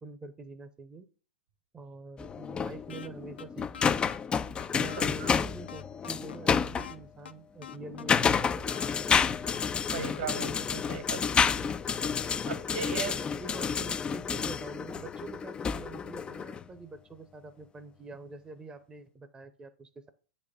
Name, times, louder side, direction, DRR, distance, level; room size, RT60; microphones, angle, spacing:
voice 1, 0.0-1.1 1.7-4.1 4.7-9.2 12.9-20.1, right 3 dB, 15° right, 10 dB, 0.7 m, -46 dB
sound 1, 2.2-6.9 7.7-16.6, left 6 dB, 15° left, 0.3 m, -30 dB
sound 2, 2.9-3.1 3.4-3.5 3.7-5.0 5.3-5.4 5.7-7.0 7.3-7.4 7.6-8.9 9.2-9.3 9.5-10.5, left 8 dB, 75° left, 0.6 m, -45 dB
voice 2, 5.0-5.3 9.9-11.5 12.5-13.1, right 5 dB, 65° right, 10 dB, 1.4 m, -37 dB
8.4 x 4.2 x 5.1 m, 0.38 s
hypercardioid pair, 110°, 6 cm